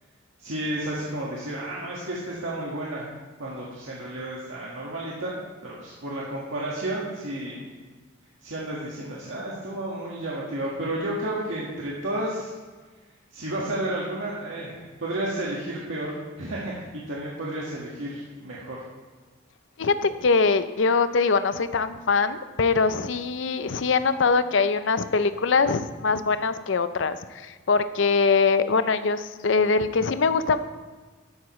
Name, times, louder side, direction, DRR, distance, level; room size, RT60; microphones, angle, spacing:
voice 1, 0.4-3.1 3.4-5.4 5.6-7.7 8.4-12.5 13.3-18.8, right 1 dB, 85° right, -6 dB, 1.8 m, -32 dB
voice 2, 19.8-30.6, left 4 dB, 70° left, 12 dB, 0.6 m, -23 dB
13.0 x 9.4 x 3.2 m, 1.4 s
head